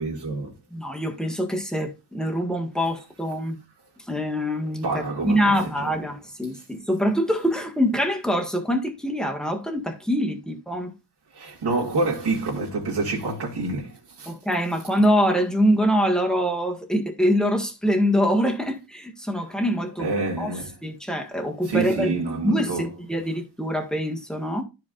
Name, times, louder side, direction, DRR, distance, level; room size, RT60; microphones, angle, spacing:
voice 1, 0.0-0.5 4.8-5.9 11.3-14.3 20.0-20.8 21.6-22.9, right 3 dB, 80° right, 2.6 m, -27 dB
voice 2, 0.7-3.6 4.1-4.9 5.2-10.9 14.3-22.2 22.4-24.6, equal, ahead, 1.7 m, -24 dB
13.5 x 4.7 x 2.6 m
wide cardioid pair, 130°, 40 cm